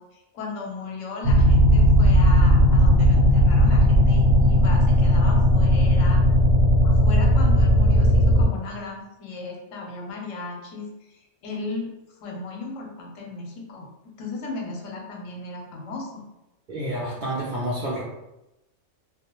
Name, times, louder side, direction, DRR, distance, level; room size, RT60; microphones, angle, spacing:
voice 1, 0.0-6.2 6.8-11.9 12.2-13.9 14.2-16.2, left 3 dB, 90° left, 0 dB, 1.0 m, -36 dB
sound 1, 1.2-8.5, equal, 80° right, 0.9 m, -17 dB
voice 2, 16.7-18.0, right 1 dB, 60° right, -6 dB, 0.5 m, -29 dB
2.3 x 2.1 x 2.9 m, 0.94 s
omnidirectional pair, 1.3 m